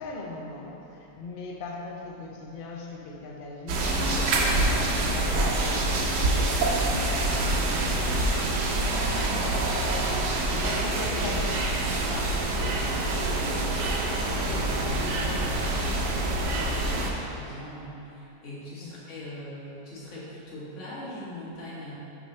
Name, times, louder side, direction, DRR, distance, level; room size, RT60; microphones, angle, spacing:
voice 1, 0.0-11.7 11.9-12.4 12.7-13.6 18.8-18.9, left 3 dB, 70° left, -1 dB, 0.5 m, -40 dB
sound 1, 3.7-17.1, right 2 dB, 75° right, 1.3 m, -26 dB
voice 2, 12.8-13.4 13.9-22.0, left 1 dB, 45° left, -8 dB, 1.7 m, -41 dB
6.6 x 3.8 x 5.4 m, 2.9 s
omnidirectional pair, 1.9 m